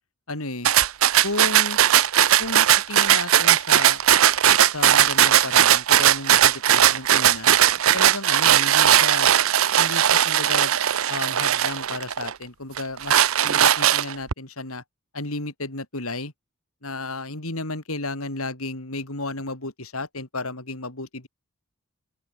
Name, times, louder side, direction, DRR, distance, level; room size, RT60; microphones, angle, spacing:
voice 1, 0.3-0.7 1.2-1.8 2.4-4.0 4.6-7.5 7.9-9.3 9.8-10.8 11.1-14.8 15.1-16.3 16.8-21.3, left 2 dB, 85° left, 6.0 m, -33 dB
sound 1, 0.7-12.3 12.8-14.3, right 10 dB, 75° right, 0.7 m, -18 dB
open air
head